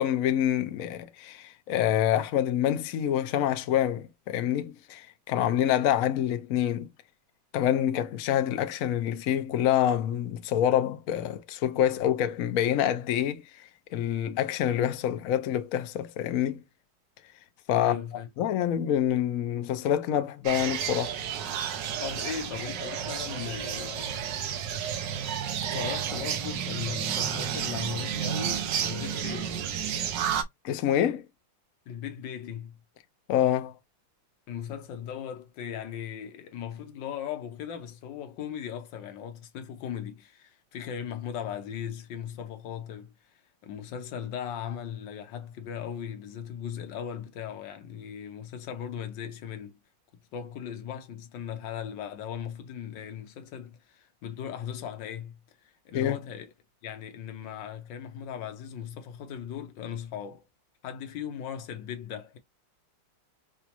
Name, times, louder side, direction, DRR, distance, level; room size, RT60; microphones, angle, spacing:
voice 1, 0.0-6.9 7.5-13.4 13.9-16.6 17.7-18.0 18.4-21.2 30.6-31.2 33.3-33.7 55.9-56.2, left 10 dB, 85° left, 0.7 m, -26 dB
voice 2, 17.8-18.3 22.0-24.3 25.6-29.6 31.9-32.8 34.5-49.8 50.3-55.4 55.6-56.5 56.8-60.4 60.8-62.4, left 8 dB, 65° left, 1.4 m, -38 dB
sound 1, 20.4-30.4, right 8 dB, 65° right, 1.3 m, -31 dB
5.1 x 2.3 x 2.9 m
omnidirectional pair, 2.3 m